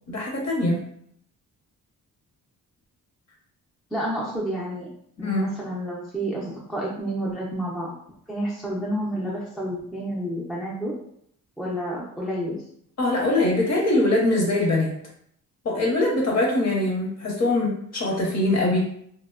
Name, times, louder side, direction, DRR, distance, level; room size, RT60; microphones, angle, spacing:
voice 1, 0.1-0.8 5.2-5.5 13.0-14.9 15.6-18.8, left 2 dB, 45° left, -2 dB, 0.8 m, -22 dB
voice 2, 3.9-4.9 5.2-7.9 8.3-10.9 11.6-12.6, right 1 dB, ahead, -4 dB, 0.3 m, -30 dB
2.9 x 2.0 x 2.3 m, 0.68 s
wide cardioid pair, 145°, 36 cm